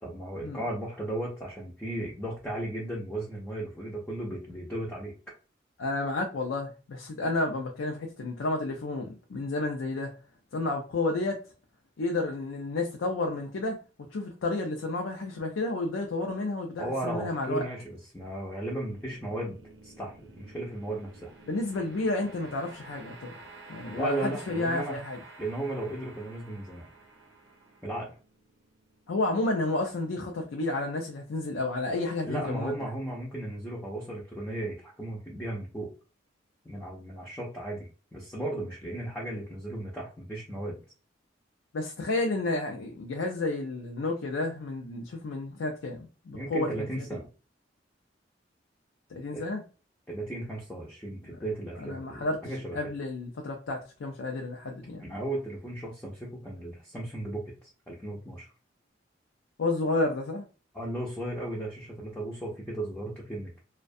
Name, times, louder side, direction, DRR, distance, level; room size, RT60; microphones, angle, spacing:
voice 1, 0.0-5.1 16.8-19.6 19.8-21.3 23.9-25.0 25.4-26.9 27.8-28.1 32.2-35.9 36.6-40.8 46.3-47.3 49.3-49.4 50.1-52.8 55.0-58.5 60.7-63.6, right 1 dB, 5° left, 0.5 m, -35 dB
voice 2, 5.8-10.1 10.5-11.4 12.0-13.8 14.1-17.7 21.4-23.3 23.7-25.2 29.1-32.8 41.7-47.2 49.1-49.6 51.8-52.4 52.7-55.0 59.6-60.4, left 2 dB, 85° left, 0.4 m, -31 dB
sound 1, 18.8-30.0, right 2 dB, 70° right, 0.6 m, -51 dB
2.4 x 2.2 x 2.5 m
head